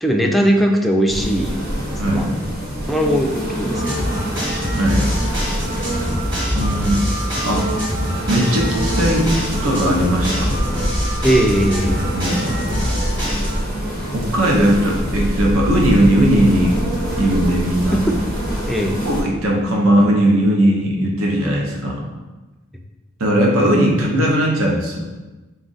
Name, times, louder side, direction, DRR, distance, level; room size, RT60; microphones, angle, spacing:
voice 1, 0.0-1.7 2.0-2.3 2.9-4.1 11.2-12.0 17.9-18.2 18.7-19.0, equal, ahead, 1 dB, 0.3 m, -19 dB
sound 1, 1.1-19.2, equal, 45° right, 1.1 m, -26 dB
voice 2, 2.0-2.3 4.7-5.1 6.5-7.1 7.4-7.7 8.3-9.3 9.6-10.5 12.1-12.4 14.1-16.8 17.2-18.0 19.0-22.0 23.2-25.1, right 1 dB, 85° right, -1 dB, 0.7 m, -18 dB
sound 2, 3.7-13.6, equal, 20° right, 1.1 m, -24 dB
4.1 x 2.4 x 3.9 m, 1.2 s
head